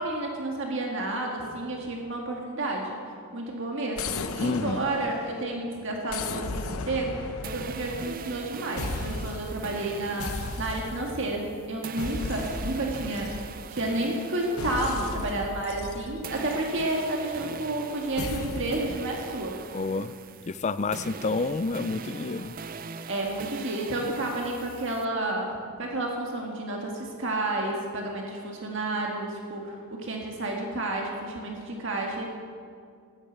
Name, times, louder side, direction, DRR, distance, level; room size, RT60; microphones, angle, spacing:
voice 1, 0.0-3.0 3.3-19.6 23.1-32.3, right 2 dB, 55° right, 0 dB, 1.7 m, -31 dB
sound 1, 4.0-5.6 6.1-8.4 8.8-9.6 10.2-11.2 12.0-13.8 14.6-17.0 18.2-18.9, left 3 dB, 70° left, 0.8 m, -36 dB
voice 2, 4.4-4.9 19.7-20.1 20.5-22.5, left 3 dB, 30° left, 14 dB, 0.4 m, -29 dB
sound 2, 7.4-15.9 16.2-25.0, right 5 dB, 40° right, 0.5 m, -41 dB
13.5 x 10.5 x 7.9 m, 2.3 s
head